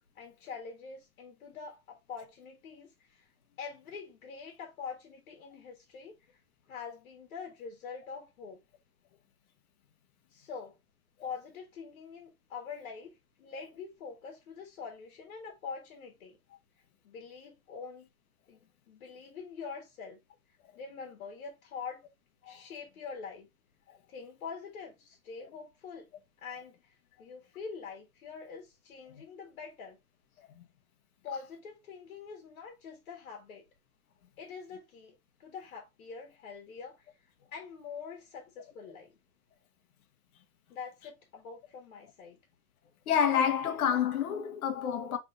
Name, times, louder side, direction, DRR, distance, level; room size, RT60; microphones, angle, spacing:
voice 1, 0.1-3.3 3.6-6.2 6.7-8.6 10.3-10.8 11.2-16.4 17.0-18.1 18.5-20.2 20.7-22.0 22.4-23.5 24.1-26.1 26.4-30.0 31.2-33.6 34.4-39.2 40.7-42.4, left 5 dB, 60° left, 1.5 m, -45 dB
voice 2, 43.1-45.2, left 8 dB, 75° left, 1.0 m, -29 dB
5.0 x 3.5 x 2.5 m
hypercardioid pair, 165°, 44 cm